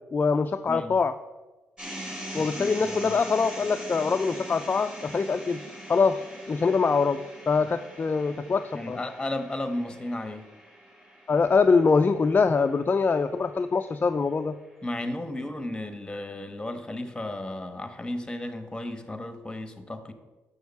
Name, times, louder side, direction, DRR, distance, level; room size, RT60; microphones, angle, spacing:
voice 1, 0.1-1.1 2.3-5.6 5.9-6.2 6.5-7.2 7.5-9.0 11.3-14.6, left 4 dB, 35° left, 8 dB, 0.4 m, -23 dB
voice 2, 0.7-1.0 2.4-3.2 8.7-10.5 14.8-20.1, left 1 dB, 15° left, 8 dB, 1.2 m, -34 dB
sound 1, 1.8-13.9, equal, 15° right, 3.0 m, -42 dB
7.1 x 6.3 x 7.0 m, 1.2 s
cardioid pair, 80°, 6 cm